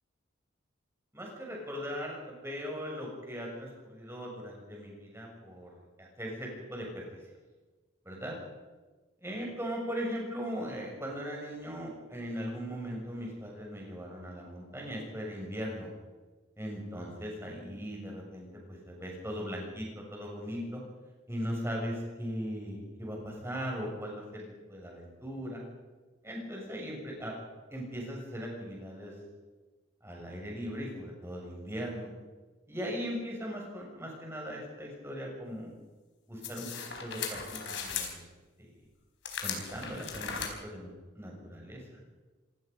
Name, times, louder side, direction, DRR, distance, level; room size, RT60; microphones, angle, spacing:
voice 1, 1.1-6.9 8.0-8.4 9.2-15.9 16.6-20.8 21.3-25.6 26.2-27.3 27.7-29.1 30.0-32.1 32.7-35.7 36.3-36.7 37.0-38.3 38.6-38.7 39.4-40.3 40.6-41.8, equal, 15° right, -1 dB, 6.7 m, -39 dB
sound 1, 36.4-38.1 39.2-40.5, left 6 dB, 60° left, 4.2 m, -37 dB
26.0 x 18.5 x 5.4 m, 1.3 s
head